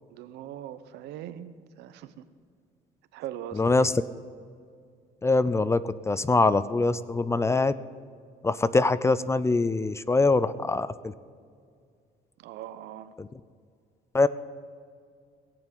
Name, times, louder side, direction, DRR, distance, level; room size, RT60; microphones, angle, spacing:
voice 1, 0.1-2.3 3.1-3.8 12.4-13.1, right 11 dB, 85° right, 12 dB, 0.8 m, -41 dB
voice 2, 3.5-3.9 5.2-7.7 8.4-11.1 13.2-13.3 14.1-14.3, left 3 dB, 15° left, 16 dB, 0.4 m, -23 dB
17.5 x 7.2 x 7.7 m, 2.2 s
cardioid pair, 110°, 17 cm